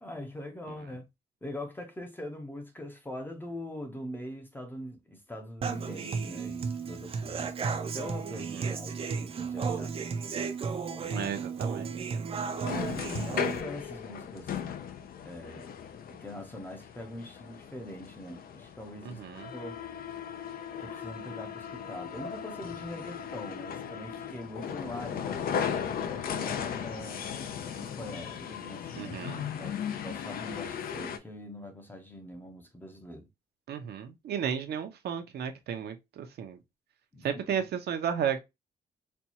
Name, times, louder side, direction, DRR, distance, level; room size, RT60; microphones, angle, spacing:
voice 1, 0.0-1.1 1.4-9.9 10.9-11.3 12.6-14.5 15.2-15.7 16.1-19.2 19.5-19.8 20.8-27.3 27.8-29.1 29.6-33.3 37.1-37.6, left 1 dB, 10° left, 0.6 m, -43 dB
Human voice / Acoustic guitar, 5.6-13.6, right 5 dB, 35° right, 0.5 m, -34 dB
voice 2, 8.3-8.8 11.1-11.9 19.2-19.5 29.0-29.4 33.7-36.6 37.2-38.4, right 8 dB, 75° right, 0.7 m, -34 dB
sound 1, 12.5-31.2, left 8 dB, 60° left, 0.5 m, -37 dB
4.3 x 2.3 x 2.8 m
wide cardioid pair, 165°, 17 cm